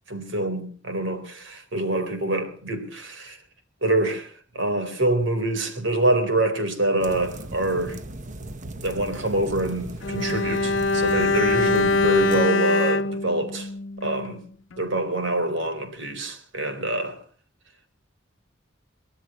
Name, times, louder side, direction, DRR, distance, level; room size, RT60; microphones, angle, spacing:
voice 1, 0.1-3.4 3.8-8.0 8.8-13.7 14.0-14.4 14.8-17.2, right 1 dB, 85° right, 3.9 m, -25 dB
sound 1, 7.0-12.4, right 1 dB, 40° right, 1.1 m, -37 dB
Bowed string instrument, 10.0-14.4 14.7-14.9, left 2 dB, 85° left, 0.8 m, -23 dB
24.0 x 18.0 x 3.0 m
head